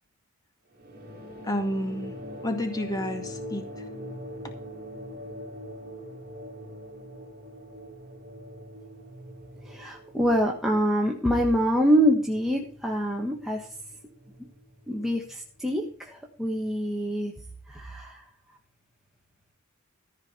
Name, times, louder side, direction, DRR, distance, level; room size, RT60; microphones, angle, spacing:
Bell bowed with grief, 0.7-15.6, equal, 45° right, 3.3 m, -43 dB
voice 1, 1.4-2.1 2.4-3.8 4.4-4.5, left 1 dB, 20° left, 5 dB, 2.1 m, -30 dB
voice 2, 9.6-13.7 14.9-17.3 17.7-18.2, equal, ahead, -1 dB, 1.5 m, -25 dB
14.5 x 5.0 x 8.1 m, 0.43 s
head